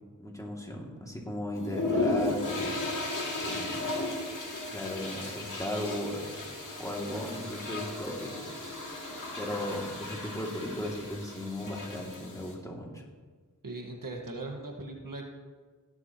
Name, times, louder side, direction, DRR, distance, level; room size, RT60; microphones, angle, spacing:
voice 1, 0.2-2.9 3.4-4.0 4.7-6.3 6.8-8.5 9.4-13.0, left 1 dB, 10° left, -2 dB, 2.6 m, -36 dB
sound 1, 1.5-12.5, left 2 dB, 65° left, 2.6 m, -35 dB
voice 2, 13.6-15.3, right 2 dB, 75° right, 1 dB, 1.8 m, -39 dB
16.5 x 11.5 x 3.1 m, 1.4 s
wide cardioid pair, 45°, 33 cm